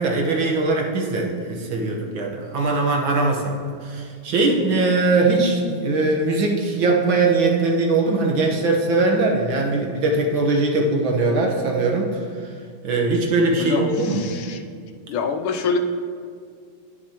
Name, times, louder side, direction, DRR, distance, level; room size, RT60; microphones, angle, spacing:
voice 1, 0.0-12.2 12.8-14.3, right 3 dB, 70° right, 0 dB, 1.9 m, -21 dB
voice 2, 13.6-14.6 15.1-15.8, left 5 dB, 80° left, 7 dB, 1.5 m, -26 dB
18.5 x 6.7 x 2.9 m, 2.1 s
omnidirectional pair, 2.3 m